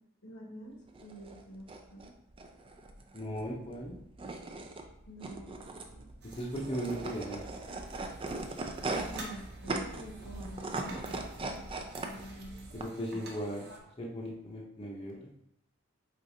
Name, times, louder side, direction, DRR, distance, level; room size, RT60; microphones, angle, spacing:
voice 1, 0.2-2.1 5.1-6.2 8.9-12.8, equal, 80° left, 0 dB, 1.2 m, -48 dB
sound 1, 0.9-12.8, right 2 dB, 25° right, 0.4 m, -40 dB
voice 2, 3.1-4.0 6.4-7.4 12.7-13.7 14.0-15.3, equal, 25° left, -3 dB, 0.7 m, -37 dB
sound 2, 6.2-13.8, right 2 dB, 55° right, 0.9 m, -50 dB
4.8 x 3.8 x 2.7 m, 0.80 s
head